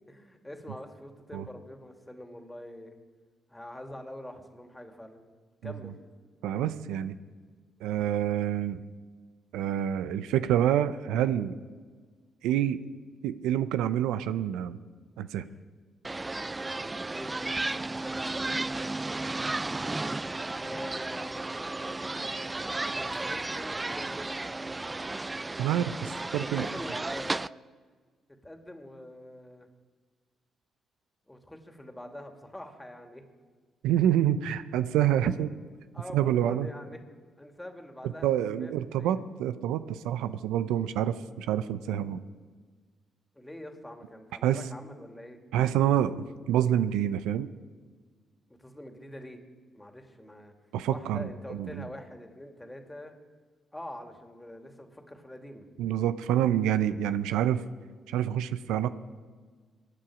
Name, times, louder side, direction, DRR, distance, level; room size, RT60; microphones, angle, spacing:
voice 1, 0.1-3.0 3.5-5.3 5.6-5.9 15.4-15.6 17.1-19.3 20.5-25.0 26.3-27.5 28.4-29.7 31.3-33.2 35.2-35.3 35.9-37.0 37.4-39.2 40.7-40.9 43.3-45.4 48.6-49.4 49.7-50.5 50.9-53.1 53.7-55.7, left 1 dB, 15° left, 4 dB, 2.6 m, -45 dB
voice 2, 6.4-7.2 7.8-8.8 9.5-11.6 12.4-12.8 13.2-14.8 15.2-15.4 25.6-26.7 33.8-35.5 36.1-36.7 38.2-42.2 44.4-44.6 45.5-47.5 50.7-51.9 55.8-57.6 58.1-58.9, right 11 dB, 80° right, 12 dB, 0.6 m, -27 dB
sound 1, 16.0-27.5, right 2 dB, 25° right, 0.4 m, -33 dB
23.5 x 10.0 x 5.0 m, 1.5 s
hypercardioid pair, 45°, 0 cm